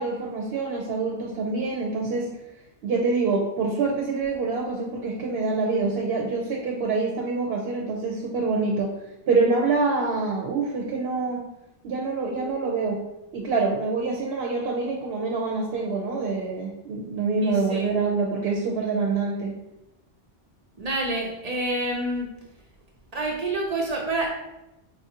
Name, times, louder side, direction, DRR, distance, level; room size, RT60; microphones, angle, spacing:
voice 1, 0.0-2.3 2.8-8.9 9.3-11.4 11.8-13.0 13.3-19.5, right 4 dB, 75° right, -1 dB, 0.8 m, -26 dB
sound 1, 12.3-14.9, right 1 dB, 65° left, 0.8 m, -46 dB
voice 2, 17.4-17.9 20.8-22.3 23.1-24.3, right 2 dB, 50° right, -1 dB, 0.6 m, -28 dB
4.5 x 2.4 x 2.8 m, 0.91 s
omnidirectional pair, 1.0 m